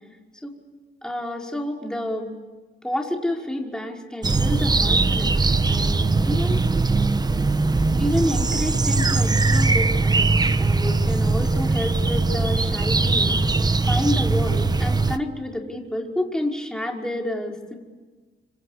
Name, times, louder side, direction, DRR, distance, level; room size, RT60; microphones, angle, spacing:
voice 1, 1.0-2.3 2.8-5.4 5.7-6.6 8.0-13.4 13.9-17.8, left 1 dB, 5° left, 0 dB, 5.4 m, -29 dB
sound 1, 4.2-15.2, right 3 dB, 20° right, 1.0 m, -20 dB
26.5 x 26.0 x 8.4 m, 1.3 s
cardioid pair, 90°, 20 cm